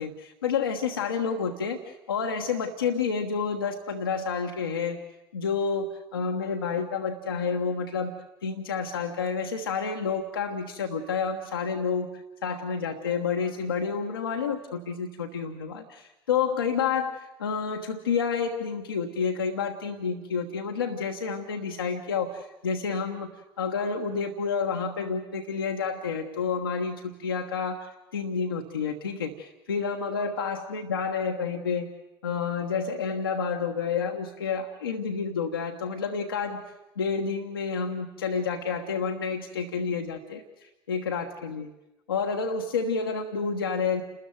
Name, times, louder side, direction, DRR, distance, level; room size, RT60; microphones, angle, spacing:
voice 1, 0.0-5.0 5.3-8.1 8.4-23.3 23.6-31.9 32.2-36.6 37.0-41.7 42.1-44.0, left 5 dB, 80° left, 2 dB, 1.2 m, -29 dB
29.0 x 13.5 x 9.5 m, 0.97 s
figure-of-eight pair, 60°, 12 cm